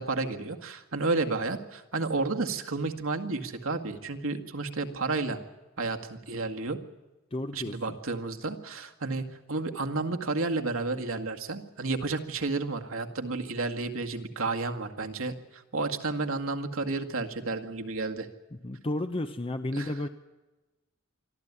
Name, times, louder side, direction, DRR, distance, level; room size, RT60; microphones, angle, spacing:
voice 1, 0.0-5.4 5.8-6.8 7.5-18.3 19.7-19.9, right 3 dB, 70° right, 5 dB, 2.0 m, -31 dB
voice 2, 7.3-8.0 18.6-20.1, left 1 dB, 25° left, 9 dB, 0.8 m, -32 dB
25.0 x 14.0 x 9.7 m, 1.1 s
head